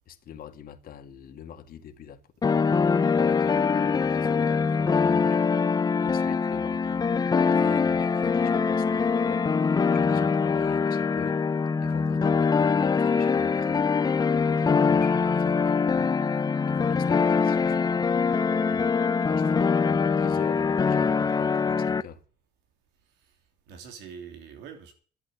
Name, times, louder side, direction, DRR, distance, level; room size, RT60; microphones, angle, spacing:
voice 1, 0.1-11.4 11.8-16.1 16.4-18.0 19.2-22.2, left 8 dB, 60° left, 1.9 m, -44 dB
sound 1, 2.4-22.0, left 5 dB, 25° left, 0.7 m, -23 dB
voice 2, 18.6-18.9 19.4-20.0 23.7-24.9, right 6 dB, 90° right, 3.2 m, -45 dB
12.0 x 7.9 x 9.5 m
cardioid pair, 110°, 17 cm